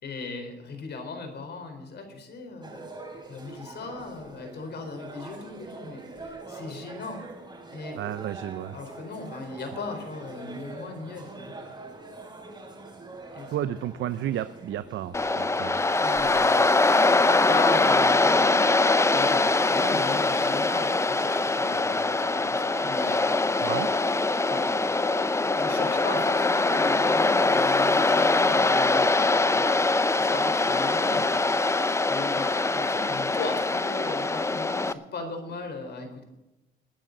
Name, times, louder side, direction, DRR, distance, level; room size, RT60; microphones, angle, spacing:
voice 1, 0.0-2.9 3.3-7.2 7.7-8.0 8.7-11.5 13.3-13.8 16.0-16.6 17.2-18.6 19.1-23.2 24.5-24.7 25.6-29.7 30.1-31.3 32.1-36.2, left 3 dB, 60° left, 5 dB, 4.3 m, -38 dB
sound 1, 2.6-18.0, right 2 dB, 20° right, 5.3 m, -44 dB
voice 2, 8.0-8.8 13.5-15.8 23.6-23.9, right 12 dB, 75° right, 12 dB, 0.7 m, -32 dB
Waves surf, 15.1-34.9, left 3 dB, 15° left, 0.7 m, -23 dB
21.0 x 10.0 x 4.0 m, 0.99 s
cardioid pair, 90°, 20 cm